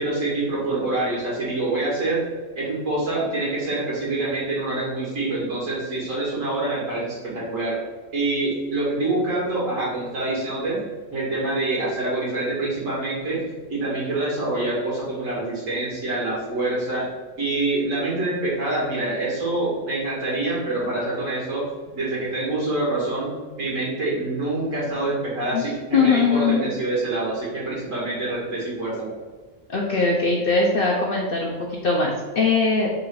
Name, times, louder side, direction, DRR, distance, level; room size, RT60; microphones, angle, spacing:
voice 1, 0.0-2.2 2.6-7.8 8.1-10.8 11.1-13.4 13.7-17.1 17.4-21.6 21.9-23.3 23.6-29.1, right 2 dB, 75° right, -6 dB, 1.9 m, -26 dB
voice 2, 25.9-26.7 29.7-32.9, left 4 dB, 60° left, -2 dB, 0.6 m, -21 dB
3.8 x 2.5 x 4.5 m, 1.4 s
omnidirectional pair, 1.4 m